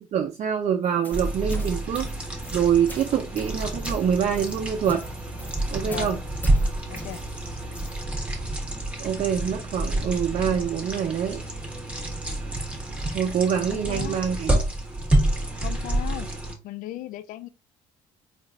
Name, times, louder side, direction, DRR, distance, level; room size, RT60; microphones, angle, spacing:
voice 1, 0.1-2.1 2.5-5.0 5.7-6.2 9.0-11.4 13.1-14.5, right 8 dB, 50° right, 0.5 m, -25 dB
sound 1, 0.8-8.0, left 1 dB, 10° left, 1.1 m, -43 dB
sound 2, 1.1-16.6, right 1 dB, 10° right, 1.4 m, -28 dB
voice 2, 5.8-6.2 6.9-7.2 13.7-14.2 15.6-16.3 16.6-17.5, left 13 dB, 65° left, 0.4 m, -36 dB
3.8 x 3.3 x 2.6 m
supercardioid pair, 65°, 15 cm